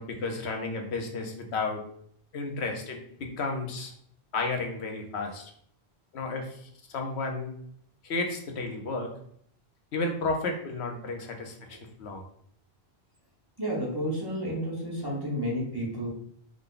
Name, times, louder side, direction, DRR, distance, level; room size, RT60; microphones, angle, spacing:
voice 1, 0.0-1.8 2.3-3.9 4.3-5.5 6.1-7.5 8.0-9.1 9.9-12.2, left 3 dB, 90° left, 3 dB, 1.1 m, -32 dB
voice 2, 13.6-16.1, equal, 25° right, -6 dB, 1.1 m, -31 dB
5.0 x 2.2 x 3.8 m, 0.66 s
omnidirectional pair, 1.1 m